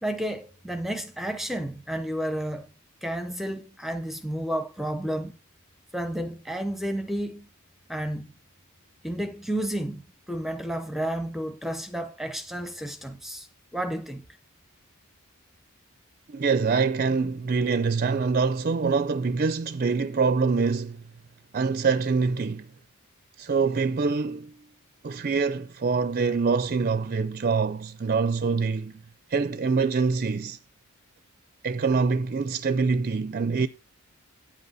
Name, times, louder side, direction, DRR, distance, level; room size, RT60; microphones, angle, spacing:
voice 1, 0.0-2.7 3.0-5.4 5.9-7.5 7.9-8.3 9.0-10.0 10.3-13.5 13.7-14.3, right 1 dB, ahead, 0.7 m, -31 dB
voice 2, 16.3-21.0 21.5-22.7 23.4-24.6 25.0-28.9 29.3-30.6 31.6-33.7, right 4 dB, 40° right, 0.4 m, -25 dB
8.7 x 8.0 x 5.5 m
head